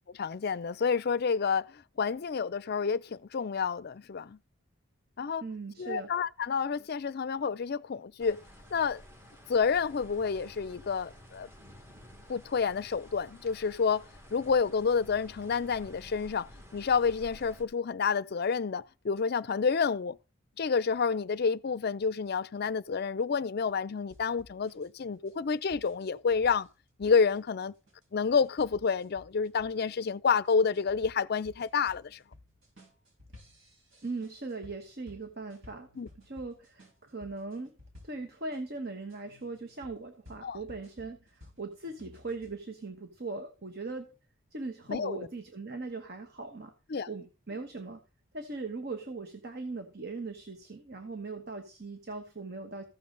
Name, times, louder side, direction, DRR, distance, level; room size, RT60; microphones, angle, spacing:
voice 1, 0.2-4.4 5.2-5.4 5.8-8.4 8.7-9.0 9.5-11.5 12.3-14.0 14.3-20.2 20.6-26.7 27.0-27.7 28.1-32.2 36.0-36.1 40.4-40.6 44.9-45.3 46.9-47.1, left 5 dB, 50° left, 0.4 m, -29 dB
voice 2, 5.4-6.1 34.0-35.9 36.2-37.7 38.0-44.1 44.5-46.7 47.1-48.0 48.3-52.8, right 3 dB, 50° right, 1.2 m, -39 dB
sound 1, 8.2-17.6, equal, 10° right, 1.6 m, -52 dB
sound 2, 24.1-38.6 39.1-42.6, left 1 dB, 75° right, 5.2 m, -56 dB
15.0 x 6.9 x 3.9 m
head